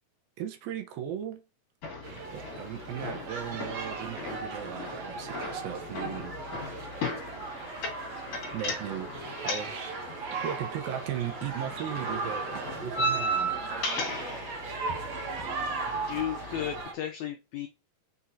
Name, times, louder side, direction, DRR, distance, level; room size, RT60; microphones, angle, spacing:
voice 1, 0.4-1.4 2.3-6.4 8.5-9.1 9.4-10.0 10.4-12.4 12.8-13.6, right 10 dB, 85° right, 2.8 m, -37 dB
sound 1, 1.8-16.8, equal, 50° left, 2.8 m, -37 dB
sound 2, 2.0-16.9, right 4 dB, 55° right, 2.4 m, -37 dB
voice 2, 16.1-17.7, left 10 dB, 90° left, 1.6 m, -34 dB
6.3 x 5.7 x 2.7 m
omnidirectional pair, 4.1 m